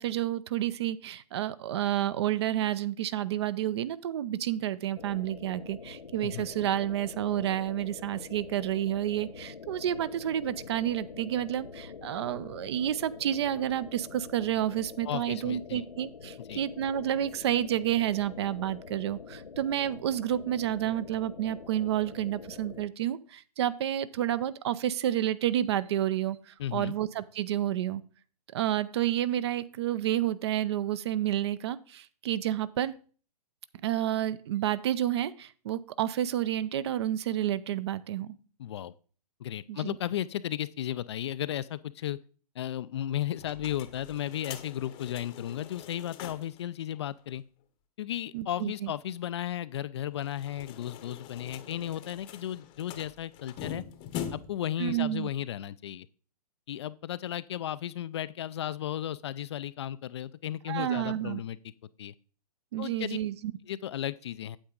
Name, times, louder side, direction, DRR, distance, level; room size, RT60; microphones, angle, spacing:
voice 1, 0.0-28.0 28.5-32.9 33.8-38.3 39.7-40.0 48.3-48.9 54.8-55.3 60.7-61.4 62.7-63.5, right 12 dB, 40° right, 17 dB, 0.5 m, -30 dB
sound 1, 5.0-22.9, left 5 dB, 85° left, 0.8 m, -46 dB
voice 2, 15.0-15.8 16.5-16.6 26.6-26.9 38.6-38.9 39.4-42.2 42.6-47.4 48.0-53.8 54.3-56.1 56.7-61.6 62.0-62.1 62.8-63.2 63.7-64.6, left 11 dB, 45° left, 16 dB, 0.4 m, -34 dB
sound 2, 43.4-46.6 46.9-47.0 47.3-47.4 50.1-54.7, left 9 dB, 25° left, 0.8 m, -43 dB
8.8 x 7.8 x 3.8 m, 0.40 s
hypercardioid pair, 135°, 21 cm